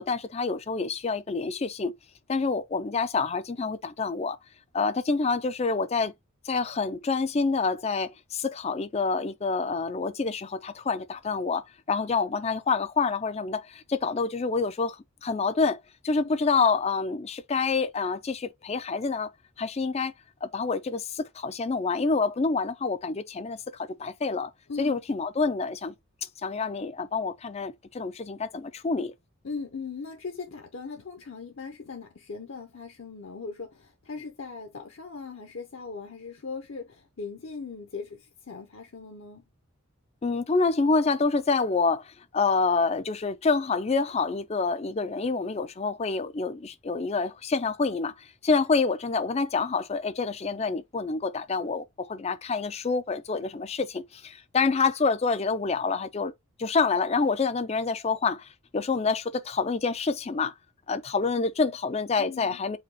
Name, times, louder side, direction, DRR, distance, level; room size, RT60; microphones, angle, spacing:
voice 1, 0.0-1.9 2.3-4.4 4.7-6.1 6.5-19.3 19.6-20.1 20.4-24.5 24.8-25.9 26.4-29.1 40.2-56.3 56.6-60.5 60.9-62.8, left 4 dB, 30° left, 0.4 m, -27 dB
voice 2, 24.7-25.0 29.4-39.4 62.2-62.6, left 4 dB, 60° left, 0.8 m, -39 dB
5.0 x 2.3 x 3.9 m
head